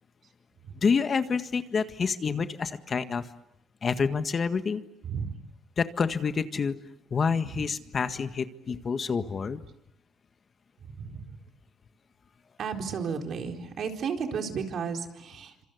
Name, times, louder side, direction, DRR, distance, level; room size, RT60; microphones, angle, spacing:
voice 1, 0.8-3.3 3.8-4.8 5.8-6.8 7.1-9.6, left 5 dB, 45° left, 9 dB, 1.7 m, -28 dB
voice 2, 12.6-15.6, right 6 dB, 65° right, 4 dB, 4.2 m, -33 dB
27.0 x 26.5 x 8.0 m, 0.82 s
cardioid pair, 90°, 0 cm